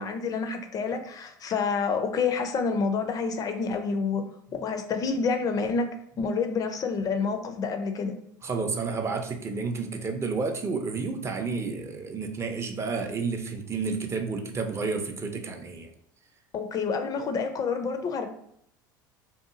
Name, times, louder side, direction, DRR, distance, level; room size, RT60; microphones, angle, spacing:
voice 1, 0.0-4.2 4.6-5.9 6.2-8.2 16.5-18.3, left 5 dB, 35° left, 6 dB, 0.4 m, -28 dB
voice 2, 8.4-15.9, right 4 dB, 25° right, 5 dB, 0.4 m, -31 dB
2.7 x 2.3 x 2.4 m, 0.70 s
hypercardioid pair, 80°, 11 cm